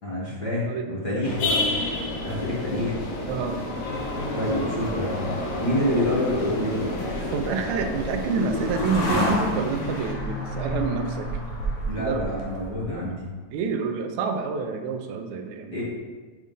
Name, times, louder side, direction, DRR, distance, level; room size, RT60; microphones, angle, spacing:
voice 1, 0.0-1.6 2.2-2.9 4.3-5.1 5.6-6.9 11.9-13.1 15.7-15.8, left 1 dB, 40° left, -7 dB, 1.7 m, -27 dB
voice 2, 0.6-1.3 3.3-3.6 4.6-4.7 7.3-11.3 12.0-12.3 12.9-13.0 13.5-15.8, right 5 dB, 80° right, 6 dB, 1.9 m, -28 dB
sound 1, 1.2-10.1, left 2 dB, 65° left, 1.7 m, -30 dB
sound 2, 5.7-13.1, left 1 dB, 90° left, 2.5 m, -31 dB
6.3 x 3.7 x 5.2 m, 1.4 s
omnidirectional pair, 3.3 m